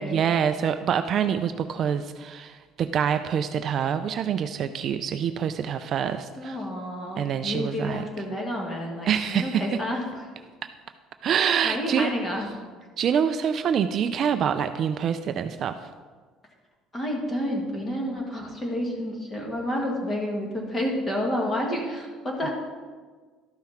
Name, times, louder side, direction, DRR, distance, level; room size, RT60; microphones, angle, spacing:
voice 1, 0.0-6.6 7.2-8.0 9.1-9.8 10.6-10.7 11.2-12.1 13.0-15.9, right 8 dB, 40° right, 9 dB, 0.3 m, -26 dB
voice 2, 6.4-10.0 11.6-12.5 16.9-22.5, equal, 15° left, -1 dB, 1.8 m, -29 dB
12.5 x 5.7 x 4.4 m, 1.5 s
cardioid pair, 155°, 0 cm